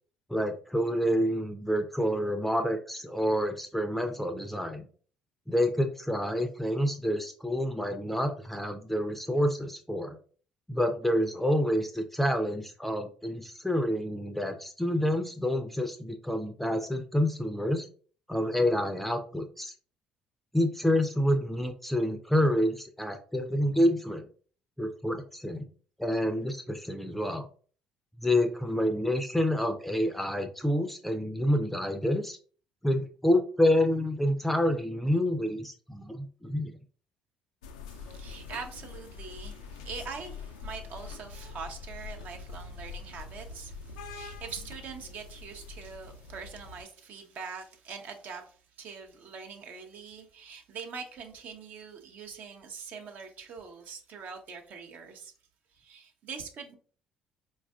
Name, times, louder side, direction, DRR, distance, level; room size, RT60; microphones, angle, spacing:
voice 1, 0.3-4.8 5.5-10.2 10.7-17.9 18.3-19.7 20.5-24.3 24.8-25.7 26.0-27.5 28.2-32.4 32.8-36.8, left 1 dB, 5° left, 7 dB, 0.5 m, -28 dB
sound 1, 37.6-46.8, left 5 dB, 80° left, 0.3 m, -44 dB
voice 2, 37.9-55.3 55.7-56.7, right 5 dB, 55° right, 4 dB, 0.7 m, -43 dB
4.0 x 2.4 x 2.3 m, 0.42 s
hypercardioid pair, 55°, 3 cm